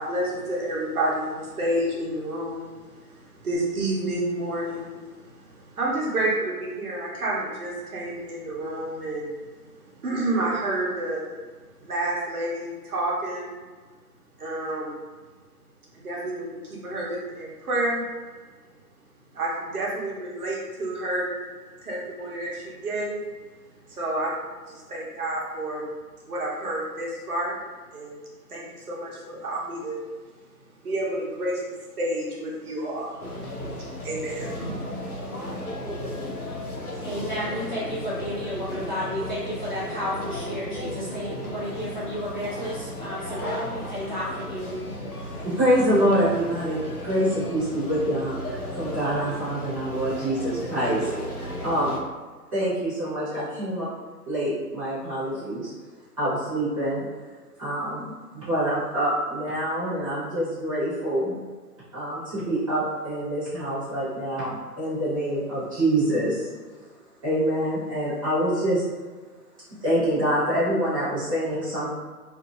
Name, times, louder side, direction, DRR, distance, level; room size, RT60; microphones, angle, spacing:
voice 1, 0.0-9.3 10.0-11.3 11.8-13.5 14.4-15.0 15.9-18.0 19.3-21.3 21.8-23.2 23.9-24.3 24.7-25.9 26.3-27.6 27.9-28.2 28.5-30.0 30.8-31.6 32.0-35.8, right 1 dB, 65° right, -5 dB, 1.0 m, -30 dB
sound 1, 33.2-52.0, left 1 dB, 65° left, 0.9 m, -35 dB
voice 2, 37.0-44.8, equal, 30° left, -11 dB, 0.7 m, -32 dB
voice 3, 45.1-51.1 51.4-51.9 52.5-53.9 54.3-55.7 56.2-57.0 57.6-61.4 61.9-66.5 67.2-68.8 69.8-71.9, right 1 dB, 20° right, -13 dB, 1.0 m, -26 dB
2.8 x 2.6 x 2.4 m, 1.4 s
hypercardioid pair, 170°, 47 cm